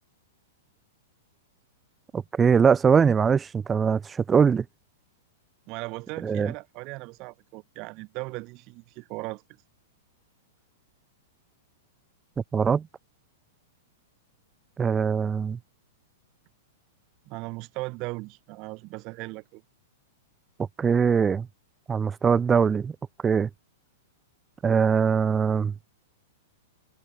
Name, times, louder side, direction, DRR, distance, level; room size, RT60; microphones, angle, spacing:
voice 1, 2.1-4.6 6.2-6.5 12.5-12.9 14.8-15.6 20.8-21.5 21.9-22.9 23.2-23.5 24.6-25.7, right 6 dB, 10° right, 0.6 m, -22 dB
voice 2, 5.7-9.4 17.3-19.6, right 25 dB, 30° right, 6.2 m, -37 dB
supercardioid pair, 175°, 0 cm